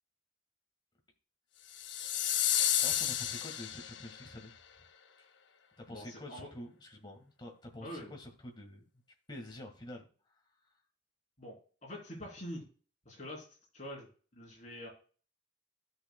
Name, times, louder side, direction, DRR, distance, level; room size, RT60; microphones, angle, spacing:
sound 1, 1.7-4.2, left 11 dB, 75° left, 0.7 m, -31 dB
voice 1, 2.8-4.5 5.2-5.3 5.8-8.8 9.3-10.1, left 1 dB, 25° left, 2 dB, 1.7 m, -47 dB
voice 2, 5.9-6.5 7.8-8.2 11.4-12.7 13.1-13.5 13.7-14.1 14.3-14.9, equal, 40° left, -2 dB, 3.5 m, -45 dB
13.5 x 6.6 x 2.2 m, 0.39 s
head